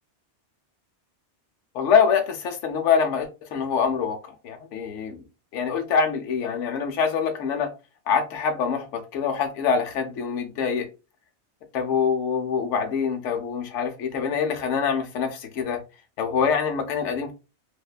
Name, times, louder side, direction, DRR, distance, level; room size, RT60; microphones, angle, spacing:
voice 1, 1.7-5.2 5.5-7.7 8.1-10.9 11.7-15.8 16.2-17.3, left 6 dB, 90° left, 0.9 m, -25 dB
2.6 x 2.1 x 2.3 m
omnidirectional pair, 1.2 m